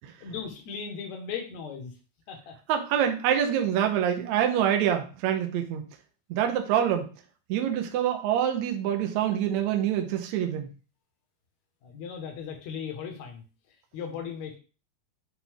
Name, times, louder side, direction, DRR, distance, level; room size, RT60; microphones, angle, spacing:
voice 1, 0.2-1.9 2.3-2.5 11.8-13.4 13.9-14.6, left 6 dB, 60° left, 3 dB, 2.1 m, -37 dB
voice 2, 2.7-5.8 6.3-7.1 7.5-10.7, right 10 dB, 85° right, 4 dB, 1.6 m, -26 dB
9.3 x 4.1 x 3.5 m, 0.35 s
omnidirectional pair, 4.5 m